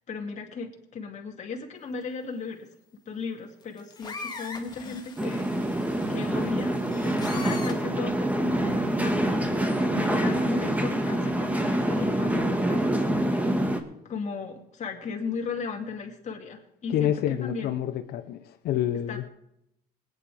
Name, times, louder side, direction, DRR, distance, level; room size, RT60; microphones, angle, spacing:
voice 1, 0.1-2.7 3.1-5.5 6.1-13.4 14.0-17.8 19.1-19.3, left 5 dB, 45° left, 2.5 m, -36 dB
sound 1, 3.6-7.9 8.9-9.1, left 4 dB, 25° left, 1.9 m, -41 dB
sound 2, 5.2-13.8, right 1 dB, 10° right, 1.5 m, -26 dB
voice 2, 16.9-18.4 18.6-19.2, left 11 dB, 70° left, 0.8 m, -27 dB
21.0 x 9.8 x 3.5 m
cardioid pair, 110°, 17 cm